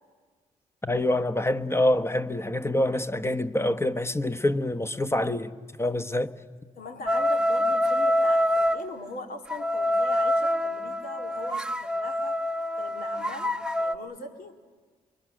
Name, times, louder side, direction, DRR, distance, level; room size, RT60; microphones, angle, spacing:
voice 1, 0.8-5.5 5.8-6.3, left 1 dB, 15° left, 1.2 m, -26 dB
voice 2, 6.8-12.4 12.8-14.5, left 2 dB, 70° left, 2.6 m, -40 dB
sound 1, 7.1-8.8 9.5-13.9, left 1 dB, 5° right, 0.9 m, -25 dB
27.5 x 23.5 x 6.3 m
supercardioid pair, 50°, 16 cm